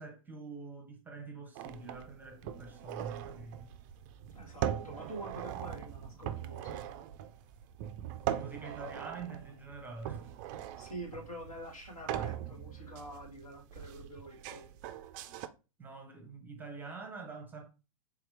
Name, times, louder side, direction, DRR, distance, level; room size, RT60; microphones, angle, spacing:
voice 1, 0.0-3.7 8.3-10.3 15.8-17.7, right 4 dB, 10° right, 0.8 m, -46 dB
sound 1, 1.6-15.5, right 11 dB, 30° right, 0.3 m, -41 dB
voice 2, 4.3-6.9 10.8-14.9, right 1 dB, 85° left, 2.1 m, -46 dB
3.7 x 2.8 x 3.4 m
figure-of-eight pair, 100°, 18 cm